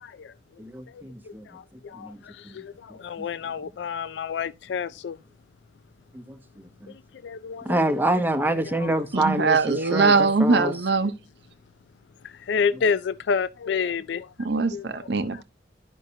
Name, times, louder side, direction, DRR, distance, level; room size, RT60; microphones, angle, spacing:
voice 1, 0.0-0.3 0.9-5.2 6.9-7.8 8.8-8.9 9.4-9.5 9.7-10.2 12.2-14.3 14.7-15.1, left 6 dB, 70° left, 0.4 m, -30 dB
voice 2, 0.6-1.5 2.0-2.2 3.2-3.3 6.1-6.2 7.6-10.7, right 1 dB, 10° right, 0.8 m, -26 dB
voice 3, 9.1-11.1 14.4-15.4, right 4 dB, 60° right, 0.7 m, -22 dB
12.0 x 5.4 x 2.7 m
head